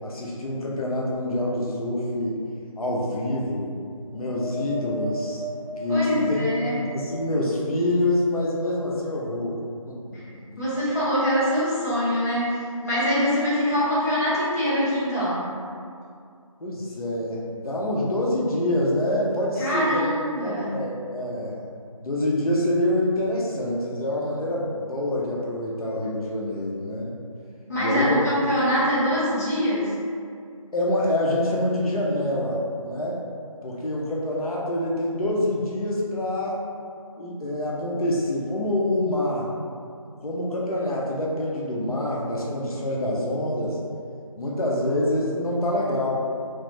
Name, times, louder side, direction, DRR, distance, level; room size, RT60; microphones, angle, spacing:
voice 1, 0.0-2.4 2.8-3.7 4.1-5.4 5.8-6.4 6.7-9.6 9.9-10.0 10.5-10.6 16.6-20.0 20.4-21.5 22.0-27.1 27.8-28.2 30.7-33.2 33.6-36.6 37.1-39.5 40.2-43.8 44.4-46.2, left 1 dB, 85° left, -4 dB, 0.7 m, -26 dB
Wind, 4.1-7.7 8.3-9.3 10.1-10.2, left 1 dB, ahead, 0.3 m, -36 dB
voice 2, 5.9-6.8 10.1-10.3 10.6-15.5 19.6-20.8 27.7-29.9, equal, 30° left, -11 dB, 0.9 m, -24 dB
3.1 x 2.1 x 3.1 m, 2.3 s
figure-of-eight pair, 170°, 18 cm